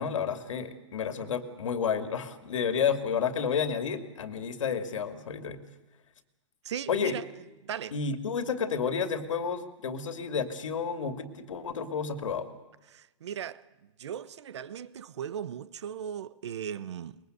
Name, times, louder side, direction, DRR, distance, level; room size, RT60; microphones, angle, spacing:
voice 1, 0.0-5.6 6.9-7.2 7.9-12.5, left 6 dB, 85° left, 2.7 m, -31 dB
voice 2, 6.6-7.2 7.6-7.9 12.9-13.6 14.0-17.2, right 8 dB, 65° right, 1.0 m, -37 dB
24.0 x 21.5 x 8.0 m
hypercardioid pair, 180°, 16 cm